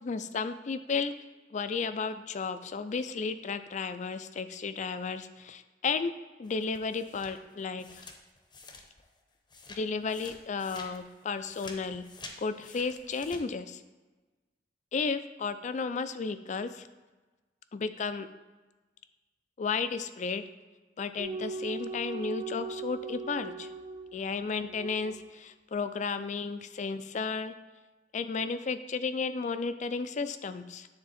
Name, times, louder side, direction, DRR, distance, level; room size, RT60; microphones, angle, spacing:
voice 1, 0.0-1.1 1.5-6.1 6.4-8.0 9.7-12.1 12.4-13.8 14.9-16.9 17.7-18.3 19.6-20.4 21.0-23.7 24.1-27.5 28.1-30.9, left 4 dB, 40° left, 11 dB, 0.4 m, -33 dB
sound 1, 6.4-9.2 9.5-13.4, left 3 dB, 25° left, 0.7 m, -49 dB
sound 2, 21.2-25.3, right 4 dB, 25° right, 0.5 m, -40 dB
9.6 x 3.6 x 4.2 m, 1.2 s
head